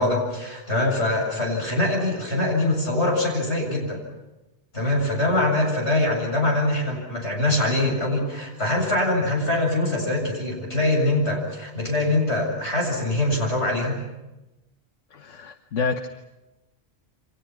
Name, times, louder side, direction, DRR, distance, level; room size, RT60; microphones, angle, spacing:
voice 1, 0.0-4.0 4.7-14.0, left 1 dB, 65° left, 0 dB, 8.1 m, -23 dB
voice 2, 15.1-16.1, left 5 dB, 90° left, 7 dB, 1.4 m, -28 dB
29.5 x 25.5 x 6.1 m, 1.0 s
omnidirectional pair, 1.2 m